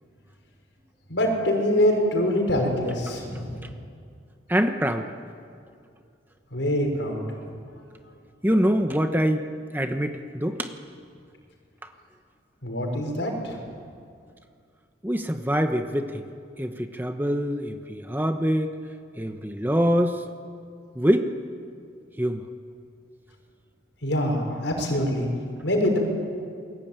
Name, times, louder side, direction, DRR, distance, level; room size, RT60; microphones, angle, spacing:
voice 1, 1.1-3.7 6.5-7.3 12.6-13.6 24.0-25.3 25.6-26.0, left 1 dB, 75° left, 2 dB, 5.8 m, -24 dB
voice 2, 4.5-5.1 8.4-9.5 9.7-10.7 15.0-16.3 16.6-18.7 19.2-20.2 20.9-21.3 22.1-22.5, equal, 10° right, 6 dB, 1.1 m, -24 dB
29.0 x 22.0 x 9.1 m, 2.3 s
head